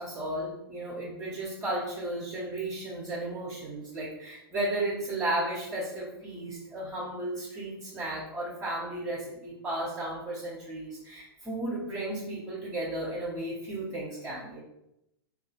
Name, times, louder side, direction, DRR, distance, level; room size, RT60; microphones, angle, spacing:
voice 1, 0.0-14.6, right 1 dB, 20° right, -5 dB, 0.9 m, -34 dB
3.1 x 2.5 x 3.9 m, 0.85 s
figure-of-eight pair, 105°, 13 cm